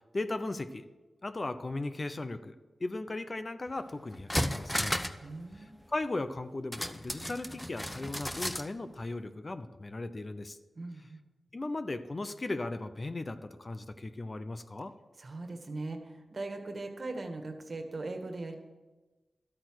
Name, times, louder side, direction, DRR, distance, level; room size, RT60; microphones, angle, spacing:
voice 1, 0.1-0.8 1.2-2.5 2.8-5.0 5.9-10.6 11.5-14.9, left 2 dB, 40° left, 10 dB, 0.8 m, -37 dB
sound 1, 3.7-3.8 4.1-5.3 5.5-5.6 6.7-8.7 9.0-9.1, equal, 10° left, 0.9 m, -34 dB
voice 2, 5.2-5.8 10.8-11.2 15.2-18.6, right 2 dB, 55° right, 5 dB, 1.7 m, -40 dB
12.5 x 8.7 x 6.4 m, 1.2 s
cardioid pair, 50°, 0 cm